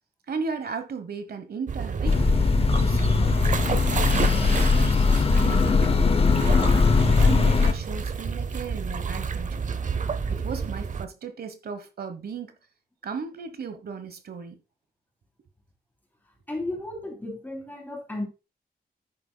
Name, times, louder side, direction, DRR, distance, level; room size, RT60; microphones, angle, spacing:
voice 1, 0.3-2.2 2.8-3.8 4.1-6.1 6.7-9.7 10.3-12.5 13.0-14.6, right 5 dB, 75° right, 1.1 m, -36 dB
sound 1, 1.7-11.0, right 5 dB, 50° right, 0.7 m, -30 dB
sound 2, 2.1-7.7, left 4 dB, 35° left, 0.6 m, -20 dB
voice 2, 16.5-18.2, left 2 dB, 10° left, 3.0 m, -34 dB
10.0 x 8.9 x 2.3 m
wide cardioid pair, 130°, 16 cm